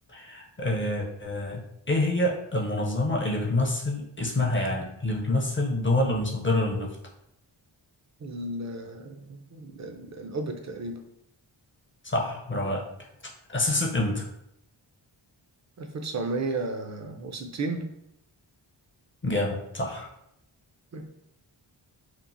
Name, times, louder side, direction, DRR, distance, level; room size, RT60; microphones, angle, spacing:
voice 1, 0.1-6.9 12.0-12.8 13.5-14.3 19.2-20.1, left 1 dB, 25° left, -1 dB, 0.5 m, -27 dB
voice 2, 8.2-11.0 15.8-17.9 20.9-21.0, right 3 dB, 40° right, 4 dB, 0.4 m, -33 dB
3.0 x 2.0 x 2.5 m, 0.80 s
cardioid pair, 50°, 48 cm